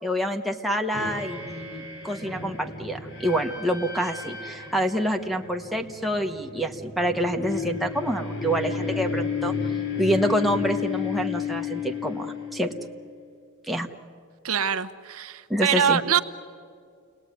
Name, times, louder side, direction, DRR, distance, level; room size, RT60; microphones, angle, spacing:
voice 1, 0.0-9.5 10.0-12.7 13.7-13.9 15.5-16.0, equal, ahead, 1 dB, 1.2 m, -27 dB
sound 1, 0.9-13.0, left 6 dB, 55° left, 3.6 m, -33 dB
voice 2, 14.4-16.2, right 8 dB, 75° right, 9 dB, 0.9 m, -24 dB
29.5 x 20.0 x 9.4 m, 2.2 s
head